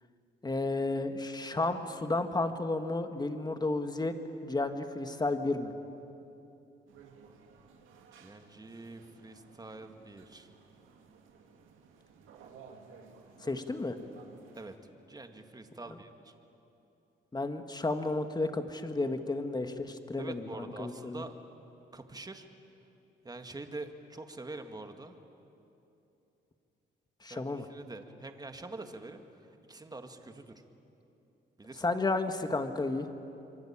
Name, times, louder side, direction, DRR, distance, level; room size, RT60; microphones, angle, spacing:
voice 1, 0.4-4.1 4.4-5.7 13.4-14.0 17.3-20.5 20.8-21.2 27.2-27.7 31.8-33.1, left 2 dB, 20° left, 7 dB, 2.0 m, -32 dB
sound 1, 6.9-14.8, right 5 dB, 85° right, 2.9 m, -56 dB
voice 2, 8.1-10.5 14.5-14.7 15.1-16.3 20.2-21.3 21.9-22.5 23.2-25.2 27.3-30.5 31.6-31.8, right 2 dB, 20° right, 6 dB, 2.2 m, -45 dB
26.5 x 24.0 x 8.9 m, 2.9 s
cardioid pair, 90°, 20 cm